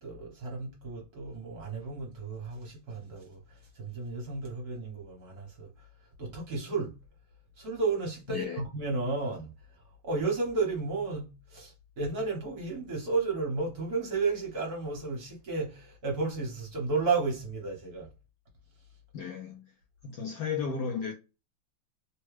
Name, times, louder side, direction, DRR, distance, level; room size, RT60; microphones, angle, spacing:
voice 1, 0.0-6.9 7.6-18.1, right 4 dB, 55° right, 1.3 m, -33 dB
voice 2, 19.1-19.7 20.0-21.1, left 6 dB, 70° left, 1.0 m, -34 dB
3.5 x 2.2 x 3.1 m
omnidirectional pair, 2.3 m